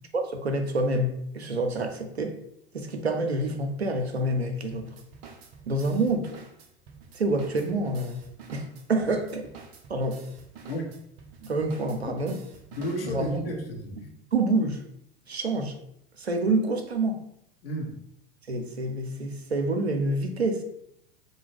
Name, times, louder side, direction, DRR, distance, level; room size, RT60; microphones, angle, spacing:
voice 1, 0.1-2.4 2.7-4.9 5.7-6.3 7.1-8.2 8.5-9.5 9.9-10.2 11.4-12.3 13.0-13.4 14.3-14.8 15.3-15.8 16.2-17.3 18.5-20.6, right 2 dB, 85° right, 6 dB, 0.5 m, -27 dB
sound 1, 4.7-13.6, right 5 dB, 30° right, 0.3 m, -48 dB
voice 2, 12.7-14.1 17.6-18.0, equal, 70° left, 1 dB, 0.7 m, -33 dB
2.8 x 2.1 x 3.2 m, 0.74 s
figure-of-eight pair, 85°, 31 cm